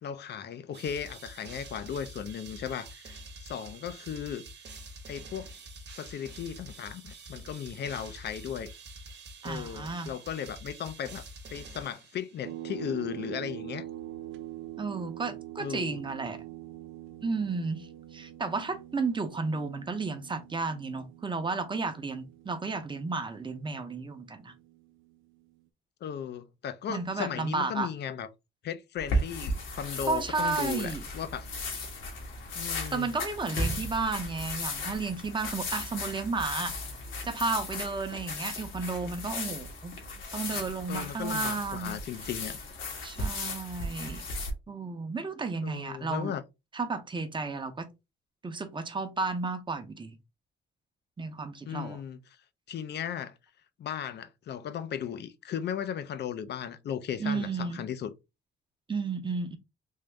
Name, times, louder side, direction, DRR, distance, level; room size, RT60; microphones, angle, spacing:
voice 1, 0.0-4.4 5.1-5.5 5.9-8.7 9.4-11.2 11.5-13.9 15.6-16.0 26.0-28.3 28.6-31.5 32.5-33.1 40.9-42.6 45.6-46.4 51.6-52.2 52.7-53.3 53.8-58.1, left 9 dB, 60° left, 0.6 m, -36 dB
sound 1, 0.7-12.6, right 2 dB, 60° right, 1.1 m, -46 dB
voice 2, 9.4-10.1 14.8-16.4 17.2-24.5 26.9-27.9 30.1-31.0 32.9-36.7 37.2-39.9 40.3-42.0 43.0-44.2 44.7-46.3 46.7-47.9 48.4-50.2 51.2-52.0 57.2-57.8 58.9-59.6, right 4 dB, 25° right, 0.8 m, -33 dB
sound 2, 12.4-25.5, right 14 dB, 85° right, 0.4 m, -44 dB
sound 3, 29.0-44.5, left 2 dB, 80° left, 1.4 m, -36 dB
3.6 x 2.6 x 3.3 m
cardioid pair, 90°, 20 cm